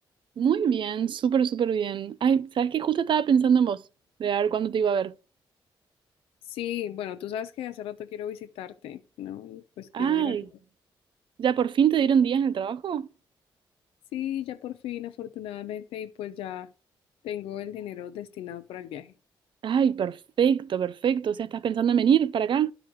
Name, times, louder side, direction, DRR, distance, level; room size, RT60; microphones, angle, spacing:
voice 1, 0.4-3.8 4.2-5.1 9.9-10.5 11.4-13.1 19.6-22.7, right 8 dB, 60° right, 0.5 m, -24 dB
voice 2, 6.5-10.4 14.1-16.7 17.2-19.1, left 11 dB, 85° left, 0.8 m, -36 dB
11.0 x 4.9 x 4.6 m
supercardioid pair, 55°, 9 cm